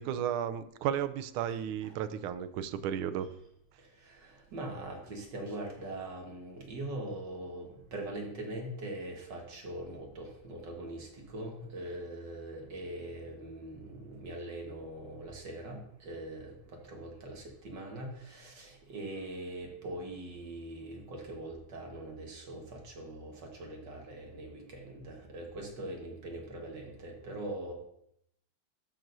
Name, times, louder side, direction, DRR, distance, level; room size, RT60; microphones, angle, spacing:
voice 1, 0.0-3.3, right 9 dB, 80° right, 13 dB, 1.4 m, -33 dB
voice 2, 1.5-2.0 4.0-27.7, right 1 dB, 55° right, 0 dB, 2.1 m, -42 dB
12.5 x 6.0 x 2.6 m, 0.74 s
omnidirectional pair, 2.3 m